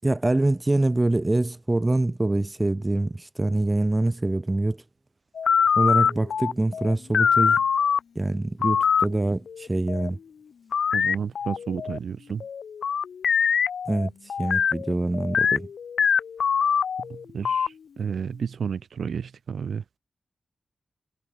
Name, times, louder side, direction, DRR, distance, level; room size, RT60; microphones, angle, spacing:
voice 1, 0.0-4.8 5.8-7.6 8.2-10.2 13.9-14.1 14.4-15.7, right 2 dB, 15° right, 7.3 m, -24 dB
sound 1, 5.4-8.0 8.6-9.1 9.5-10.1 10.7-12.0 12.4-17.7, left 7 dB, 80° left, 2.1 m, -23 dB
voice 2, 10.9-12.4 17.0-19.8, right 6 dB, 70° right, 7.4 m, -32 dB
wide cardioid pair, 180°, 0 cm